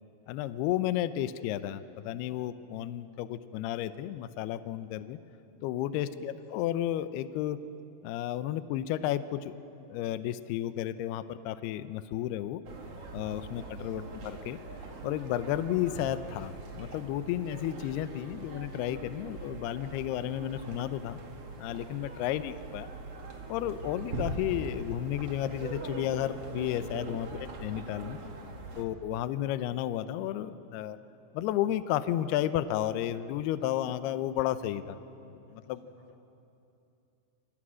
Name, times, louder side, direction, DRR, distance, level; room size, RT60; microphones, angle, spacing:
voice 1, 0.3-5.2 5.6-7.6 8.0-9.5 9.9-12.6 13.1-14.6 15.0-21.2 21.6-22.9 23.5-27.3 27.6-28.2 28.8-31.0 31.3-35.0 35.5-35.8, left 12 dB, 80° left, 12 dB, 2.3 m, -32 dB
sound 1, 12.6-28.8, right 2 dB, 45° right, 2.1 m, -42 dB
voice 2, 28.0-28.4 35.5-35.6 35.9-36.2, right 1 dB, 75° right, 0 dB, 7.1 m, -60 dB
28.0 x 27.0 x 6.3 m, 2.8 s
omnidirectional pair, 5.5 m